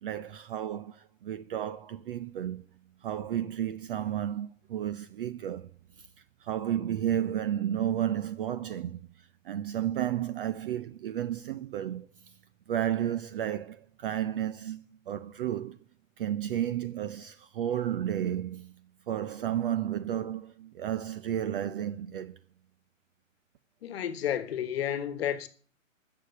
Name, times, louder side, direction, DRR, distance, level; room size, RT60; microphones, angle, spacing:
voice 1, 0.0-2.6 3.0-5.7 6.4-9.0 9.5-12.1 12.7-15.8 16.2-18.7 19.1-22.4, right 10 dB, 45° right, 0.6 m, -32 dB
voice 2, 23.8-25.5, left 10 dB, 50° left, 1.3 m, -31 dB
15.5 x 6.9 x 6.9 m
hypercardioid pair, 135°, 40 cm